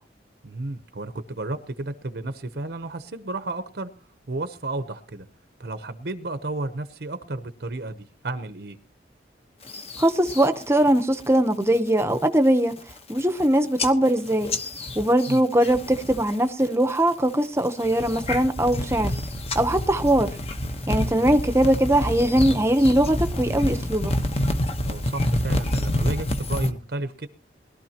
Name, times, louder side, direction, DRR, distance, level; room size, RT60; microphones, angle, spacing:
voice 1, 0.4-3.9 4.3-5.3 5.6-8.8 15.3-15.4 21.0-21.2 24.8-27.3, right 2 dB, 60° right, 0.8 m, -32 dB
sound 1, 9.7-10.5 10.9-11.3 11.6-12.0 12.5-12.6 12.8-13.4 13.8-16.3 16.6-17.1 17.6-26.7, left 1 dB, 35° left, 1.1 m, -28 dB
voice 2, 10.0-12.8 13.1-14.5 14.9-19.1 19.5-20.4 20.9-24.1, right 1 dB, 15° right, 0.8 m, -21 dB
21.0 x 12.5 x 2.9 m
head